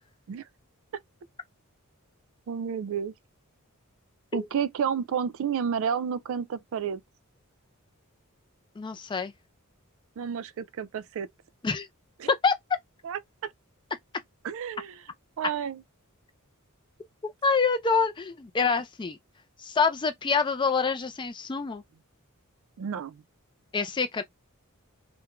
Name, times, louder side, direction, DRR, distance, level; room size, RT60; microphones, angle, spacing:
voice 1, 2.5-3.1 4.3-7.0 10.2-11.3 12.2-12.3 13.0-13.5 14.4-15.0 15.4-15.8 22.8-23.2, right 7 dB, 65° right, 0.3 m, -31 dB
voice 2, 8.8-9.3 11.6-11.9 12.4-12.5 17.2-19.2 19.6-21.8 23.7-24.2, left 5 dB, 20° left, 0.3 m, -26 dB
2.4 x 2.1 x 2.8 m
head